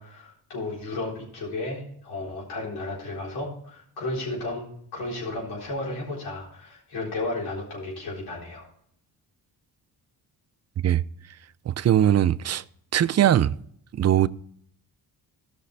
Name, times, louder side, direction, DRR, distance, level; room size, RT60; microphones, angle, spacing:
voice 1, 0.0-8.7, left 2 dB, 90° left, 4.2 m, -33 dB
voice 2, 11.6-12.6 12.9-13.6 13.9-14.3, right 11 dB, 45° right, 0.5 m, -20 dB
15.0 x 6.1 x 3.4 m
cardioid pair, 80°, 38 cm